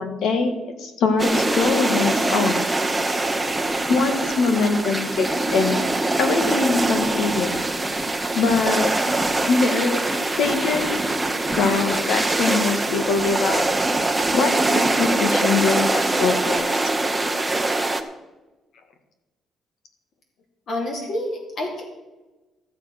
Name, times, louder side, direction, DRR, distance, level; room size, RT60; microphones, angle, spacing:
voice 1, 0.0-2.6 3.9-5.8 6.2-7.6 8.3-8.9 9.5-10.0 10.4-10.9 11.6-13.6 14.3-16.9, left 4 dB, 75° left, 6 dB, 1.8 m, -23 dB
sound 1, 1.2-18.0, right 2 dB, 10° right, 0.9 m, -23 dB
voice 2, 20.7-21.8, left 1 dB, 55° left, 1 dB, 3.0 m, -28 dB
14.0 x 7.5 x 6.0 m, 1.1 s
cardioid pair, 150°, 0 cm